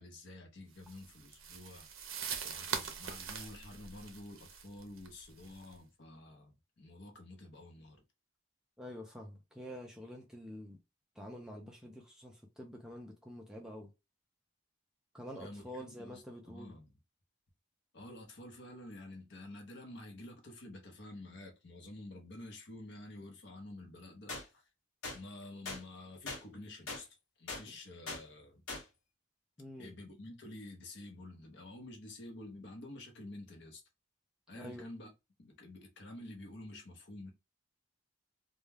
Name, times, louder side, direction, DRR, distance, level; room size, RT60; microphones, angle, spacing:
voice 1, 0.0-1.9 2.4-8.0 15.3-16.9 17.9-24.6 25.1-27.1 27.4-28.6 29.8-33.8 34.5-35.1 35.4-37.3, left 1 dB, 55° left, 0.7 m, -49 dB
sound 1, 0.8-5.7, right 6 dB, 75° right, 0.5 m, -43 dB
voice 2, 8.8-10.8 11.2-13.9 15.1-16.7 29.6-29.9 34.5-34.9, equal, 5° right, 0.4 m, -47 dB
sound 2, 24.3-24.4 25.0-25.2 25.7-25.8 26.3-26.4 26.9-27.0 27.5-27.6 28.1-28.2 28.7-28.8, left 3 dB, 90° left, 1.0 m, -40 dB
2.2 x 2.2 x 3.2 m
head